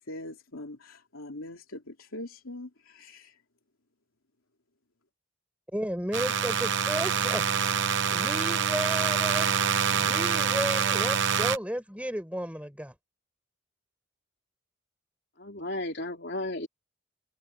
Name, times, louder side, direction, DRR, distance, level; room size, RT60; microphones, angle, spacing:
voice 1, 0.0-3.4, left 1 dB, 85° left, 2.9 m, -42 dB
voice 2, 5.7-7.4 8.1-9.5 9.9-12.9, equal, 5° right, 6.4 m, -33 dB
sound 1, 6.1-11.6, right 7 dB, 60° right, 0.8 m, -26 dB
voice 3, 15.4-16.7, left 1 dB, 55° left, 3.7 m, -34 dB
open air
head